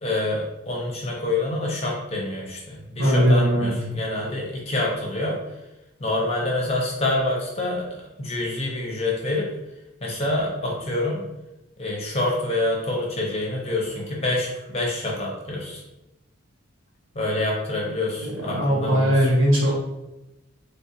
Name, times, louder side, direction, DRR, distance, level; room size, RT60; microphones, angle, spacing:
voice 1, 0.0-5.4 6.0-9.5 10.0-11.3 11.8-15.8 17.1-19.3, left 2 dB, 30° left, -2 dB, 0.6 m, -27 dB
voice 2, 3.0-3.7 18.2-19.7, equal, 75° right, -3 dB, 1.0 m, -19 dB
3.4 x 2.4 x 2.7 m, 0.95 s
head